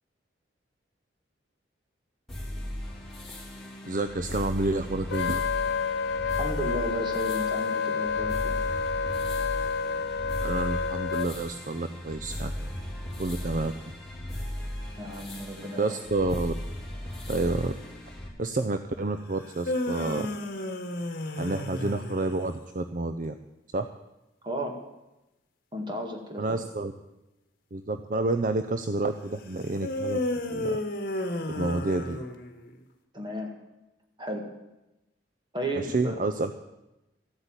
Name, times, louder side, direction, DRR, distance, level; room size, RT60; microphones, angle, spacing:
sound 1, 2.3-18.3, left 1 dB, ahead, 2.8 m, -37 dB
voice 1, 3.8-5.4 10.4-12.7 13.2-13.7 15.8-16.5 17.3-17.7 18.4-20.3 21.4-23.3 23.7-23.9 26.4-26.9 27.7-30.2 30.5-30.8 31.5-32.2 35.9-36.5, right 2 dB, 45° right, 9 dB, 0.6 m, -29 dB
Wind instrument woodwind instrument, 5.1-11.3, left 5 dB, 70° left, 0.4 m, -29 dB
voice 2, 6.4-8.6 15.0-16.0 24.4-24.8 25.7-26.6 33.1-33.6 34.2-34.5 35.5-36.2, equal, 25° right, 3 dB, 2.0 m, -34 dB
sound 2, 19.4-22.6 29.8-32.7, left 1 dB, 50° left, 1.4 m, -32 dB
13.5 x 8.1 x 8.9 m, 0.98 s
head